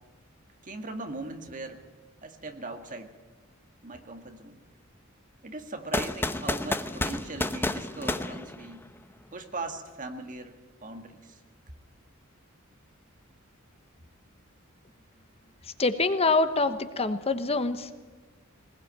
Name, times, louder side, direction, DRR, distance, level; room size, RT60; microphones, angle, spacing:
voice 1, 0.6-1.8 2.2-3.1 3.8-4.6 5.4-8.9 9.3-10.6 10.8-11.4, right 2 dB, 40° right, 6 dB, 1.9 m, -39 dB
sound 1, 5.9-9.1, left 1 dB, 10° left, 0.9 m, -31 dB
voice 2, 15.8-17.9, left 3 dB, 30° left, 10 dB, 1.0 m, -25 dB
20.5 x 20.0 x 9.0 m, 1.3 s
head